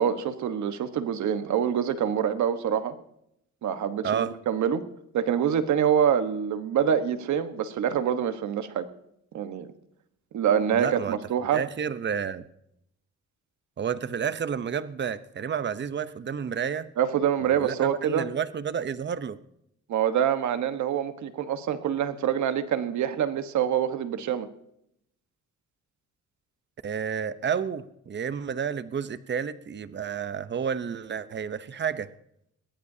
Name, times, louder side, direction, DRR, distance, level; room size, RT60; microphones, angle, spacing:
voice 1, 0.0-2.9 3.6-4.8 5.1-8.9 9.3-9.7 10.3-11.6 17.0-18.2 19.9-24.5, right 8 dB, 70° right, 10 dB, 1.3 m, -26 dB
voice 2, 10.7-11.2 11.5-12.5 13.8-16.9 17.4-19.4 26.8-32.1, right 7 dB, 35° right, 14 dB, 0.8 m, -30 dB
22.0 x 17.0 x 2.8 m, 0.77 s
cardioid pair, 90°, 30 cm